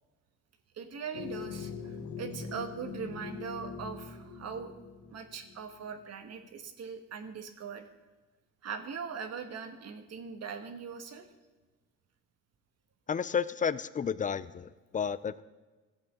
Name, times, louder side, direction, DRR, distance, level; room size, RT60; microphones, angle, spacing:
voice 1, 0.7-4.7 5.1-7.8 8.6-11.2, right 6 dB, 55° right, 7 dB, 1.3 m, -41 dB
sound 1, 1.1-5.8, left 5 dB, 70° left, 1.5 m, -42 dB
voice 2, 13.1-15.4, left 7 dB, 25° left, 16 dB, 0.4 m, -32 dB
15.5 x 7.9 x 3.7 m, 1.2 s
cardioid pair, 90°, 30 cm